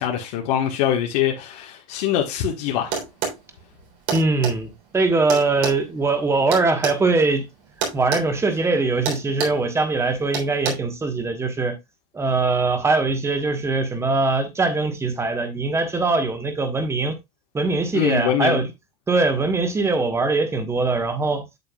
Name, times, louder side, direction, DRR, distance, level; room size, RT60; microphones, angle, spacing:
voice 1, 0.0-3.0 17.9-18.7, left 10 dB, 70° left, 1.5 m, -23 dB
sound 1, 2.9-3.4 4.1-4.6 5.3-7.0 7.8-8.3 8.5-8.7 9.0-9.6 10.3-10.7, right 6 dB, 75° right, 3.5 m, -26 dB
voice 2, 4.1-7.5 7.9-11.8 12.1-17.1 17.5-18.6 19.1-21.4, right 3 dB, 10° right, 1.2 m, -22 dB
8.2 x 7.5 x 2.3 m
supercardioid pair, 150°, 21 cm